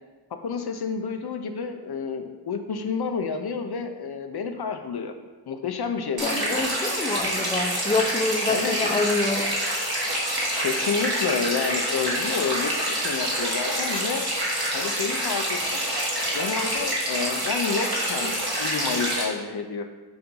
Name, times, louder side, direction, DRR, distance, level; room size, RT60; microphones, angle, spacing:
voice 1, 0.4-5.1 5.5-6.7 8.5-8.8 10.6-14.2 14.7-15.8 16.3-19.8, left 5 dB, 65° left, 6 dB, 0.6 m, -29 dB
voice 2, 6.2-9.5, left 3 dB, 15° left, 4 dB, 0.5 m, -26 dB
sound 1, 6.2-19.2, right 1 dB, 60° right, 1.7 m, -27 dB
6.9 x 2.6 x 5.3 m, 1.3 s
wide cardioid pair, 65°, 42 cm